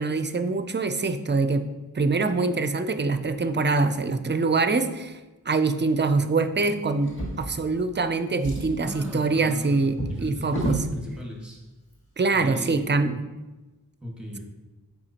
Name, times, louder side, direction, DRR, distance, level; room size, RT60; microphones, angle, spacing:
voice 1, 0.0-1.6 1.9-5.2 5.5-10.8 12.2-13.2, right 3 dB, 30° right, 10 dB, 0.4 m, -24 dB
Drawer open or close, 7.0-8.0 8.3-10.9 11.8-11.9 12.3-12.4, right 1 dB, 30° left, 2.0 m, -33 dB
voice 2, 8.8-11.6 12.3-12.8 14.0-14.4, equal, ahead, -3 dB, 1.7 m, -37 dB
7.9 x 4.9 x 2.9 m, 1.1 s
wide cardioid pair, 50°, 38 cm